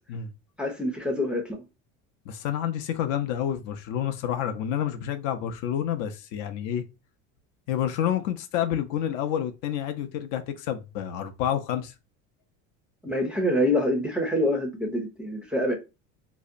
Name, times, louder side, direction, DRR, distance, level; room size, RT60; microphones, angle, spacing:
voice 1, 0.6-1.6 13.0-15.7, left 1 dB, 5° right, 0.4 m, -26 dB
voice 2, 2.3-6.8 7.7-11.9, left 10 dB, 70° left, 0.5 m, -29 dB
2.7 x 2.1 x 2.4 m
cardioid pair, 130°, 33 cm